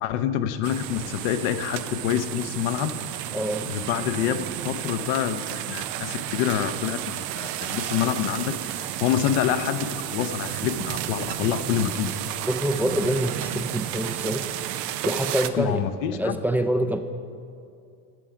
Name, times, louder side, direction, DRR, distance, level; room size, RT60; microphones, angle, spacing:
voice 1, 0.0-2.9 3.6-12.1 15.5-16.4, left 10 dB, 70° left, 9 dB, 0.7 m, -27 dB
sound 1, 0.6-15.5, right 12 dB, 90° right, 0.7 m, -32 dB
voice 2, 3.3-3.7 12.5-14.4 15.0-15.9 16.1-17.0, equal, 5° right, 8 dB, 0.3 m, -26 dB
13.5 x 6.9 x 5.0 m, 2.4 s
supercardioid pair, 95°, 47 cm